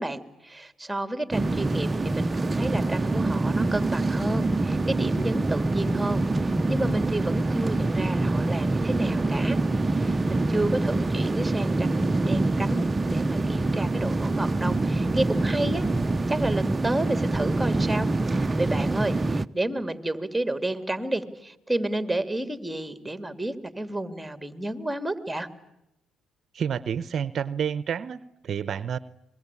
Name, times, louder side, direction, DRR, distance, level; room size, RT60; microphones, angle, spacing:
voice 1, 0.0-9.6 10.0-15.9 16.3-18.1 18.4-25.5, right 1 dB, 5° right, 9 dB, 2.9 m, -31 dB
sound 1, 1.3-19.5, right 2 dB, 25° right, 0.9 m, -25 dB
voice 2, 26.5-29.0, right 8 dB, 60° right, 15 dB, 0.9 m, -29 dB
26.0 x 22.5 x 8.5 m, 0.87 s
supercardioid pair, 70°, 0 cm